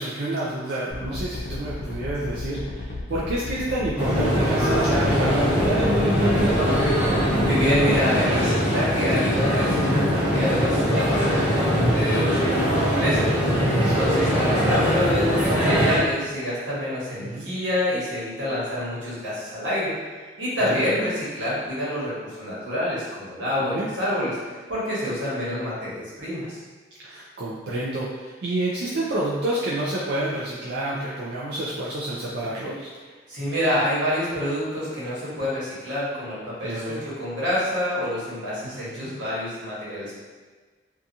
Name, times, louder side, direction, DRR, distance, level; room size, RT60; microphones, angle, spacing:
voice 1, 0.0-6.5 11.7-12.1 13.8-14.0 17.2-17.5 20.6-21.0 23.6-23.9 27.0-32.9 36.6-37.0 38.6-39.1, right 1 dB, 60° right, -7 dB, 0.4 m, -29 dB
sound 1, 0.9-8.0, left 2 dB, 45° left, 0.3 m, -33 dB
sound 2, 4.0-16.0, equal, 10° right, 0.5 m, -21 dB
voice 2, 7.0-19.9 20.4-24.4 24.7-26.6 33.3-40.1, left 1 dB, 85° right, -8 dB, 1.2 m, -27 dB
2.8 x 2.3 x 2.5 m, 1.4 s
head